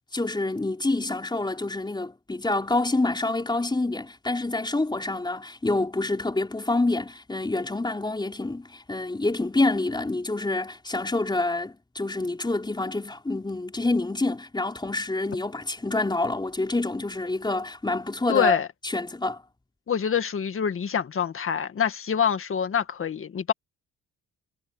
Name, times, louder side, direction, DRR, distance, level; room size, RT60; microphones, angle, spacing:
voice 1, 0.1-18.6 18.8-19.4, left 2 dB, 15° left, 4.2 m, -27 dB
voice 2, 18.3-18.7 19.9-23.5, left 7 dB, 45° left, 2.0 m, -25 dB
cardioid pair, 90°, 30 cm